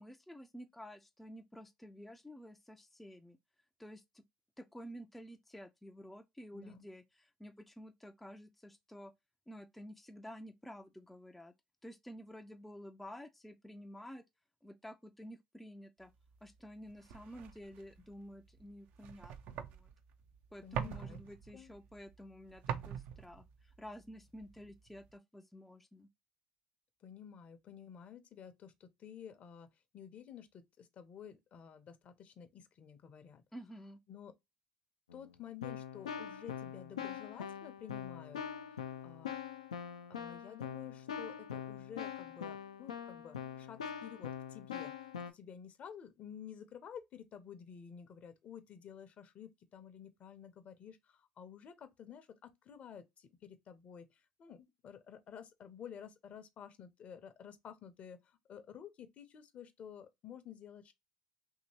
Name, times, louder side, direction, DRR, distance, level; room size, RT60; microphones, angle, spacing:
voice 1, 0.0-3.4 3.8-4.2 4.6-9.1 9.5-11.5 11.8-14.2 14.6-16.1 16.4-19.9 20.5-26.1 33.5-34.0, equal, 5° left, 0.4 m, -51 dB
voice 2, 6.5-6.8 20.6-21.2 21.5-21.7 27.0-29.7 29.9-33.4 34.1-34.3 35.1-38.4 38.7-39.4 40.1-44.9 45.3-60.9, left 8 dB, 45° left, 0.7 m, -52 dB
sound 1, 16.2-25.2, right 8 dB, 60° right, 0.4 m, -46 dB
Keyboard (musical), 35.1-35.3 35.6-45.3, left 8 dB, 85° left, 0.4 m, -43 dB
2.8 x 2.8 x 2.7 m
hypercardioid pair, 65°, 3 cm